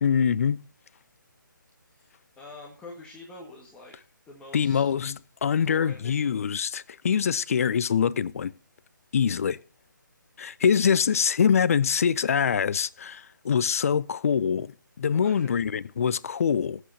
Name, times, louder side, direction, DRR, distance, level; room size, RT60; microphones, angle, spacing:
voice 1, 0.0-0.6 4.5-8.5 9.1-9.6 10.4-16.8, left 7 dB, 45° left, 0.6 m, -24 dB
voice 2, 1.8-3.9 4.3-4.9 5.6-6.3 15.1-15.5, left 2 dB, 10° left, 1.7 m, -46 dB
21.5 x 8.0 x 2.8 m
figure-of-eight pair, 150°, 11 cm